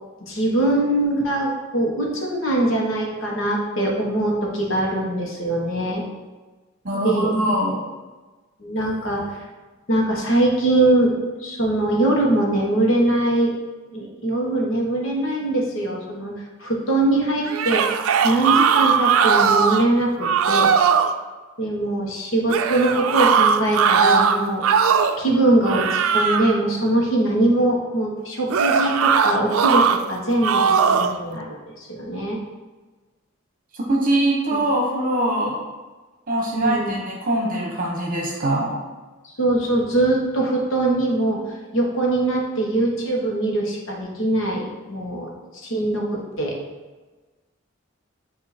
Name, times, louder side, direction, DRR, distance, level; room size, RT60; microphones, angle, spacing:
voice 1, 0.2-6.0 7.0-7.3 8.6-9.4 9.9-13.5 13.9-16.3 16.6-18.0 18.2-20.7 21.6-24.7 25.2-32.4 34.5-34.6 36.5-37.0 39.4-41.4 41.7-46.5, right 1 dB, 70° left, -1 dB, 1.2 m, -22 dB
voice 2, 6.8-7.8 33.7-35.6 36.3-38.7, right 1 dB, 40° right, -2 dB, 1.0 m, -22 dB
sound 1, 17.5-19.9 20.2-21.1 22.5-25.2 25.6-26.6 28.5-30.0 30.4-31.2, right 6 dB, 85° right, 0.4 m, -19 dB
8.4 x 2.8 x 4.2 m, 1.3 s
head